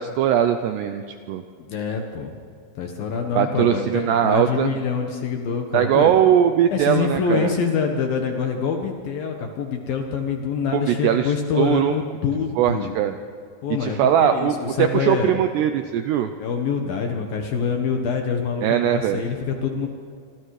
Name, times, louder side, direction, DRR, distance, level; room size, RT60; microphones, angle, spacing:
voice 1, 0.0-1.4 3.4-4.7 5.7-7.5 10.7-12.0 12.6-13.1 13.8-16.3 18.6-19.2, right 10 dB, 80° right, 8 dB, 2.4 m, -20 dB
voice 2, 1.7-2.3 2.8-6.1 6.7-12.9 13.6-15.3 16.4-19.9, left 6 dB, 65° left, 3 dB, 2.6 m, -25 dB
28.0 x 25.5 x 4.9 m, 2.2 s
omnidirectional pair, 5.7 m